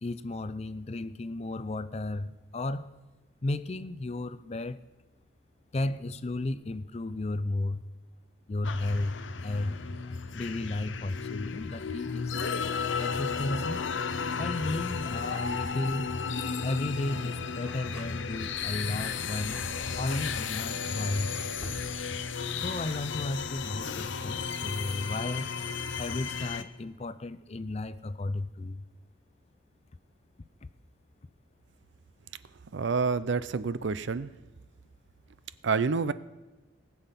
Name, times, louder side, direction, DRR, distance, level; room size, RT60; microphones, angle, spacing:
voice 1, 0.0-2.9 3.4-4.8 5.7-7.8 8.5-12.4 13.0-13.8 14.4-16.1 16.6-21.3 22.5-25.5 26.0-28.8, left 2 dB, 30° left, 0.4 m, -34 dB
sound 1, 8.6-26.6, left 5 dB, 65° left, 0.7 m, -34 dB
Drawer open or close, 15.2-16.2 17.3-18.4 19.2-21.9, equal, 5° left, 2.7 m, -49 dB
voice 2, 32.7-34.3 35.6-36.1, right 5 dB, 65° right, 0.5 m, -28 dB
19.0 x 7.1 x 5.7 m
head